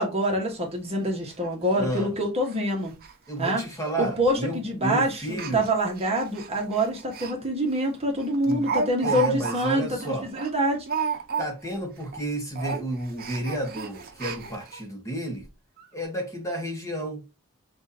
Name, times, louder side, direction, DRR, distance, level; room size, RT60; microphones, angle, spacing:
voice 1, 0.0-2.9 3.4-3.6 4.0-10.9, right 1 dB, 30° right, 1.3 m, -26 dB
Speech, 0.5-0.6 1.0-1.1 1.4-1.5 1.8-2.0 2.4-2.6 2.9-3.1 3.4-3.5 4.3-4.5 5.3-7.3 7.7-7.8 8.2-11.7 12.0-12.2 12.5-14.8 15.4-15.5 15.8-15.9, right 5 dB, 45° right, 0.8 m, -33 dB
voice 2, 1.7-2.1 3.3-5.7 8.4-8.7 9.0-10.3 11.4-15.5 15.9-17.2, right 1 dB, 15° left, 1.1 m, -31 dB
6.1 x 2.6 x 2.8 m
head